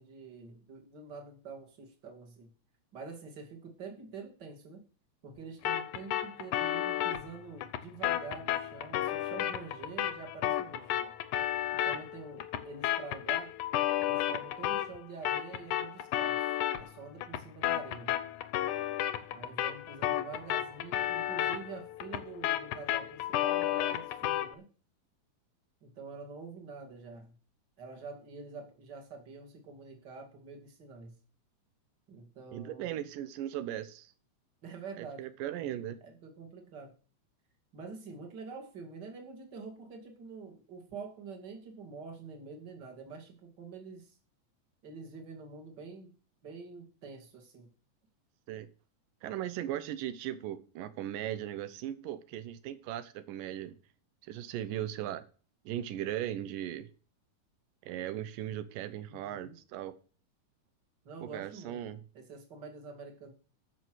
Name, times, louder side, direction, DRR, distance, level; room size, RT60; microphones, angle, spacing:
voice 1, 0.0-2.5 2.9-4.8 5.2-11.1 11.8-13.5 14.0-18.1 19.3-24.7 25.8-27.3 27.8-31.2 32.1-33.0 34.6-35.2 36.0-36.9 37.7-44.1 44.8-46.1 46.4-47.7 59.1-59.6 61.0-61.8 62.1-63.3, right 4 dB, 35° right, 3 dB, 2.6 m, -46 dB
sound 1, 5.7-15.0 15.3-24.6, left 12 dB, 75° left, 2.3 m, -33 dB
voice 2, 32.5-34.1 35.0-36.0 48.5-48.7 49.2-53.8 54.2-55.2 55.7-56.9 57.8-59.9 61.2-62.0, right 12 dB, 90° right, 13 dB, 2.5 m, -38 dB
14.0 x 6.1 x 6.2 m, 0.39 s
omnidirectional pair, 3.7 m